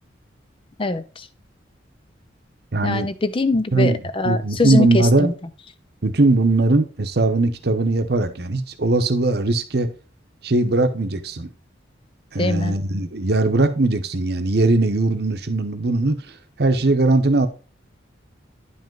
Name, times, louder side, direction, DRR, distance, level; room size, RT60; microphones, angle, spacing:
voice 1, 0.8-1.2 2.8-5.3 12.4-12.8, left 2 dB, 30° left, 0.5 m, -22 dB
voice 2, 2.7-3.1 3.7-4.0 4.2-5.3 6.0-9.9 10.4-11.5 12.3-17.5, right 2 dB, 60° right, 0.9 m, -20 dB
10.0 x 5.2 x 3.8 m
head